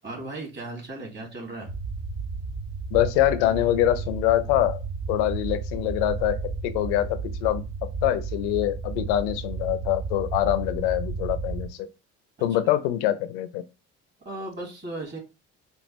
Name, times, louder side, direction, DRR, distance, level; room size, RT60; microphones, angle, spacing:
voice 1, 0.0-1.7 14.2-15.2, right 2 dB, 30° right, 2.6 m, -36 dB
sound 1, 1.7-11.7, right 4 dB, 55° right, 1.3 m, -33 dB
voice 2, 2.9-4.8 5.1-6.4 6.6-7.6 8.0-11.9 12.4-13.6, left 13 dB, 80° left, 0.6 m, -24 dB
5.2 x 2.4 x 3.1 m
hypercardioid pair, 65°, 35 cm